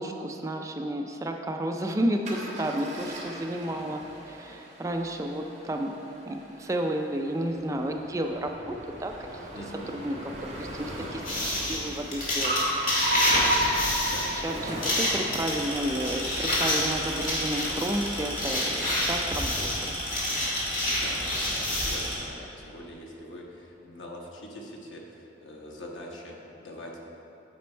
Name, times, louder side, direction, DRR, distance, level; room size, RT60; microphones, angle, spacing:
voice 1, 0.0-5.9 6.2-8.7 9.0-9.5 9.9-10.3 10.6-14.1 14.4-20.0, right 1 dB, 15° right, 3 dB, 0.3 m, -32 dB
Car, 2.2-19.1, right 1 dB, 35° right, 1.2 m, -36 dB
voice 2, 3.6-3.9 9.5-10.0 14.0-14.5 20.8-21.2 21.6-26.9, left 1 dB, 90° left, -1 dB, 1.1 m, -43 dB
sound 1, 11.2-22.1, left 1 dB, 45° left, 1.8 m, -29 dB
sound 2, 15.4-22.2, equal, 10° left, 1.2 m, -35 dB
8.5 x 5.2 x 4.4 m, 3.0 s
head